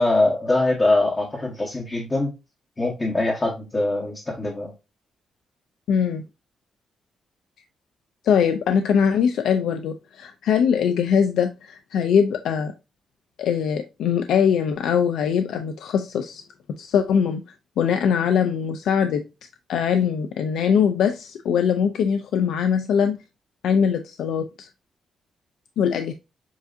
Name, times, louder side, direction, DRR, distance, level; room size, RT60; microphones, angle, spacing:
voice 1, 0.0-2.3 2.8-4.7, left 2 dB, 20° left, 1.1 m, -22 dB
voice 2, 5.9-6.2 8.2-12.7 13.4-16.4 16.8-17.4 17.8-19.2 19.7-23.2 23.6-24.7 25.8-26.1, left 7 dB, 85° left, 0.5 m, -22 dB
7.3 x 2.7 x 2.5 m
cardioid pair, 140°, 0 cm